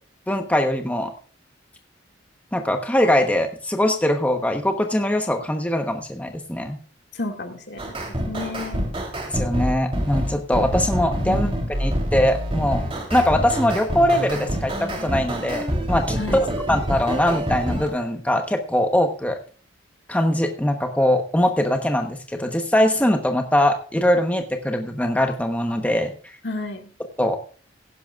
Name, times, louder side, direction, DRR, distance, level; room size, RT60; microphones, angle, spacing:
voice 1, 0.3-1.1 2.5-6.8 9.3-11.5 11.8-12.8 13.1-16.2 16.7-19.4 20.1-26.1 27.2-27.4, left 1 dB, 10° left, 4 dB, 1.0 m, -22 dB
voice 2, 7.1-8.0 8.3-8.9 11.2-11.6 16.2-16.4 26.4-26.9, left 2 dB, 70° left, 3 dB, 2.1 m, -31 dB
sound 1, 7.8-17.9, equal, 30° right, 3.3 m, -26 dB
16.0 x 11.5 x 2.4 m, 0.39 s
head